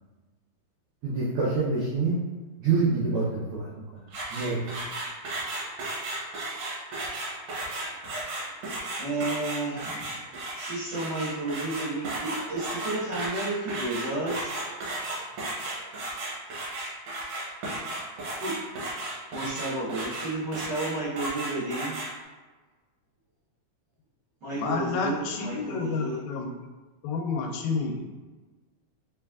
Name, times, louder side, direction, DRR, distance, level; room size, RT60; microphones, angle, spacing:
voice 1, 1.0-2.2 2.6-3.7 4.3-4.6, right 4 dB, 85° right, -8 dB, 1.2 m, -26 dB
sound 1, 4.1-22.1, right 2 dB, 65° right, 1.8 m, -34 dB
voice 2, 9.0-10.2 10.5-14.5 18.4-18.5 19.3-21.9 24.4-26.2, right 2 dB, 45° right, -11 dB, 1.6 m, -32 dB
voice 3, 24.5-26.5 27.0-28.1, left 4 dB, 85° left, 2 dB, 2.0 m, -30 dB
4.3 x 3.3 x 2.3 m, 1.3 s
omnidirectional pair, 3.4 m